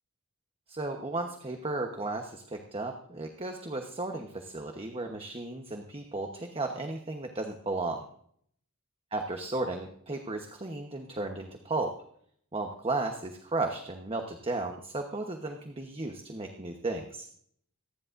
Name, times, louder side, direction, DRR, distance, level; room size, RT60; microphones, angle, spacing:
voice 1, 0.7-8.0 9.1-12.0 12.5-17.3, right 2 dB, 25° right, 4 dB, 1.1 m, -34 dB
26.0 x 10.5 x 2.6 m, 0.63 s
head